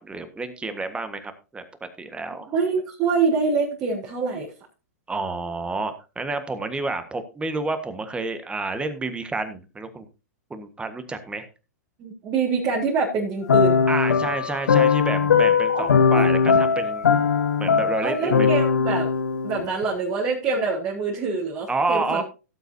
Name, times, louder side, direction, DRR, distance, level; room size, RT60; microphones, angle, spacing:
voice 1, 0.0-2.5 5.1-10.1 10.5-11.5 13.9-17.1 17.6-18.5 21.7-22.2, right 3 dB, 10° right, 9 dB, 1.5 m, -29 dB
voice 2, 2.5-4.5 12.0-13.9 15.7-15.9 16.1-16.3 18.0-19.1 19.4-22.2, right 4 dB, 35° right, -4 dB, 3.7 m, -25 dB
sound 1, 13.5-19.9, left 6 dB, 80° left, 1.2 m, -20 dB
17.0 x 8.0 x 2.8 m, 0.31 s
hypercardioid pair, 110°, 9 cm